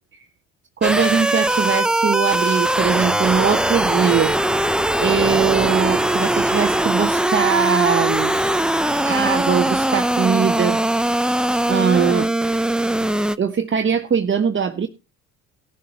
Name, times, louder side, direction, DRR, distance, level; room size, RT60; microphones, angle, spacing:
sound 1, 0.8-13.4, right 1 dB, ahead, 0.7 m, -20 dB
voice 1, 0.8-4.4 5.0-8.4 9.0-10.8 11.0-11.2 11.7-12.3 13.4-14.9, right 7 dB, 30° right, 6 dB, 1.1 m, -21 dB
17.0 x 7.0 x 4.3 m, 0.30 s
hypercardioid pair, 60°, 37 cm